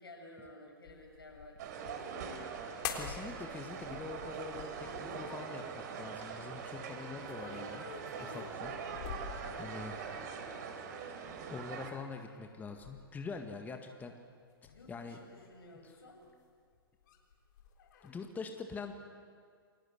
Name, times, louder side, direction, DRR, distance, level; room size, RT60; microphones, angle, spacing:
voice 1, 0.0-2.1 9.4-10.1 14.7-16.3, left 2 dB, 80° left, 1 dB, 7.0 m, -54 dB
sound 1, 0.8-2.2 2.8-3.4 3.6-5.4 7.2-10.1 11.3-11.7 12.1-13.3 14.5-16.4 16.7-18.3, left 7 dB, 55° left, 3.7 m, -47 dB
sound 2, 1.6-11.9, right 6 dB, 50° right, 3.6 m, -43 dB
voice 2, 2.9-7.9 8.2-8.7 9.6-9.9 11.0-14.1 14.9-15.2 15.8-15.9 18.0-18.9, left 4 dB, 15° left, 4 dB, 1.8 m, -44 dB
29.5 x 22.0 x 8.1 m, 2.1 s
figure-of-eight pair, 110°, 12 cm